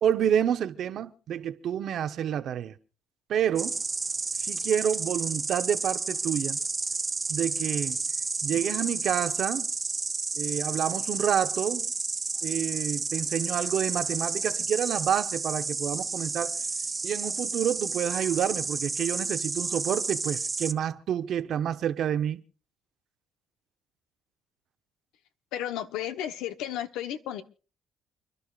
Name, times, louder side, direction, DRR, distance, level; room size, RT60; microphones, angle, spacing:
voice 1, 0.0-2.7 3.3-3.8 4.3-6.6 7.3-8.0 8.4-9.7 10.4-11.9 12.4-16.6 17.0-22.4, right 9 dB, 65° right, 0.9 m, -28 dB
Insect, 3.6-20.7, right 3 dB, 25° right, 0.9 m, -31 dB
voice 2, 25.5-27.4, left 11 dB, 85° left, 1.0 m, -33 dB
29.5 x 11.5 x 2.5 m
supercardioid pair, 75°, 0 cm